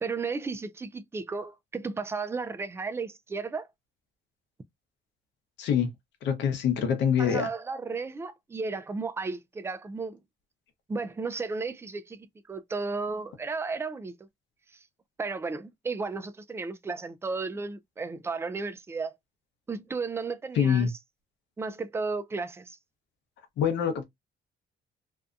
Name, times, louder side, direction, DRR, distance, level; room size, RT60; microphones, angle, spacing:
voice 1, 0.0-3.7 7.2-10.2 10.9-14.1 15.2-19.1 19.7-20.9 21.6-22.8, right 4 dB, 15° right, 0.3 m, -34 dB
voice 2, 5.6-5.9 6.2-7.5 20.6-20.9 23.6-24.0, left 8 dB, 75° left, 0.8 m, -25 dB
2.7 x 2.2 x 2.4 m
cardioid pair, 100°, 19 cm